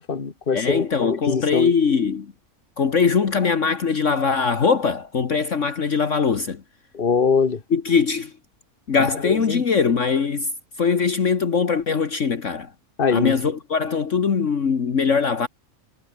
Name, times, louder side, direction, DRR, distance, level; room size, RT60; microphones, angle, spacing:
voice 1, 0.0-1.7 6.9-7.6 9.5-9.6 13.0-13.3, left 5 dB, 35° left, 1.9 m, -22 dB
voice 2, 0.5-2.3 2.8-6.6 7.7-8.3 8.9-10.5 10.8-12.7 13.1-15.5, left 5 dB, 55° left, 1.8 m, -21 dB
omnidirectional pair, 1.6 m